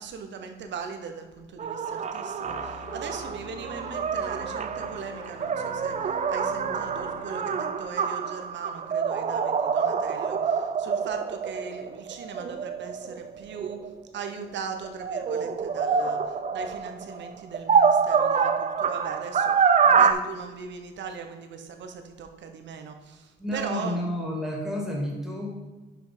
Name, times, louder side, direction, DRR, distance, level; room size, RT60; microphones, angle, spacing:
voice 1, 0.0-13.8 14.1-24.0, right 6 dB, 65° right, 6 dB, 0.9 m, -39 dB
sound 1, 1.6-14.3 14.8-20.1, right 6 dB, 35° right, 0.5 m, -26 dB
sound 2, 2.4-8.2, left 2 dB, 40° left, 1.4 m, -45 dB
voice 2, 23.4-25.5, left 1 dB, ahead, -2 dB, 2.1 m, -30 dB
5.9 x 5.2 x 5.0 m, 1.2 s
cardioid pair, 90°, 20 cm